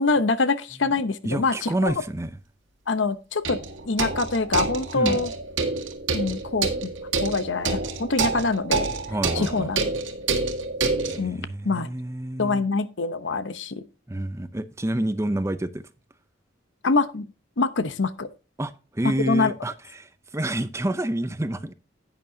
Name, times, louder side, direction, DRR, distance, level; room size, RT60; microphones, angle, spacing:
voice 1, 0.0-1.9 2.9-3.6 3.9-5.3 6.1-6.9 7.2-8.9 9.3-9.9 11.2-11.9 12.4-13.8 16.8-17.3 17.6-18.3 19.0-19.5, left 3 dB, 75° left, 0.8 m, -25 dB
voice 2, 1.2-2.4 4.9-5.2 9.1-9.7 11.1-12.6 14.1-15.9 18.6-21.7, right 1 dB, 15° right, 0.5 m, -28 dB
sound 1, 1.9-2.0 3.4-11.2, right 4 dB, 85° right, 1.9 m, -28 dB
10.5 x 9.2 x 2.8 m
head